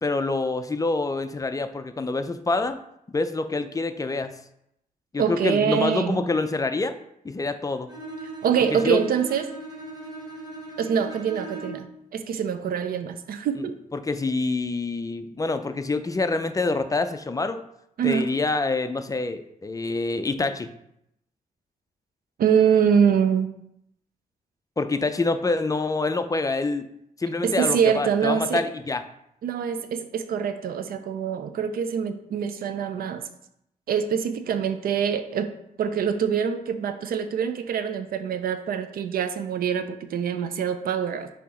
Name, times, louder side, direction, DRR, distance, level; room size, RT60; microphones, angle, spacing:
voice 1, 0.0-2.8 3.1-4.3 5.1-7.0 7.2-7.9 8.7-9.0 13.9-17.6 18.0-20.7 24.8-26.9 27.2-29.0, left 3 dB, 25° left, 9 dB, 0.4 m, -26 dB
voice 2, 5.2-6.2 8.4-9.5 10.8-11.9 12.1-13.8 18.0-18.3 22.4-23.5 27.4-28.6 29.4-33.2 33.9-35.5 35.8-41.3, right 7 dB, 85° right, 10 dB, 0.5 m, -24 dB
Bowed string instrument, 7.9-12.0, right 2 dB, 25° right, 1.4 m, -38 dB
6.9 x 2.8 x 4.8 m, 0.78 s
cardioid pair, 85°, 15 cm